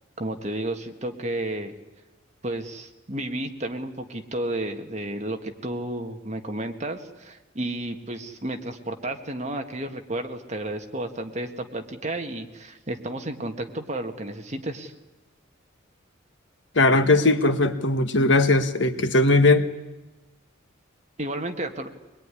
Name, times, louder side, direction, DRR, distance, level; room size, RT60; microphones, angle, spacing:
voice 1, 0.2-1.7 2.4-14.9 21.2-21.9, right 1 dB, 35° right, 5 dB, 1.8 m, -32 dB
voice 2, 16.7-19.7, left 2 dB, 65° left, 9 dB, 1.5 m, -19 dB
23.5 x 21.0 x 9.9 m, 1.1 s
head